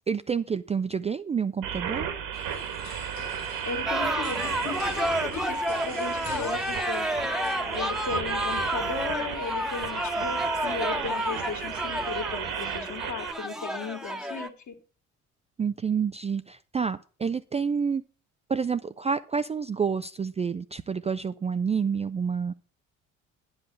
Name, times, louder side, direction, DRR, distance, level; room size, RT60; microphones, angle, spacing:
voice 1, 0.1-2.1 15.6-18.0 18.5-22.5, right 6 dB, 15° right, 11 dB, 0.4 m, -28 dB
sound 1, 1.6-13.3, right 8 dB, 70° right, 1.9 m, -34 dB
sound 2, 2.3-7.5, left 7 dB, 85° left, 1.3 m, -45 dB
voice 2, 3.6-7.1 7.7-14.7, left 5 dB, 50° left, 5 dB, 2.1 m, -36 dB
sound 3, 3.9-14.5, equal, ahead, 1.1 m, -30 dB
10.0 x 5.6 x 6.5 m, 0.37 s
hypercardioid pair, 55°, 38 cm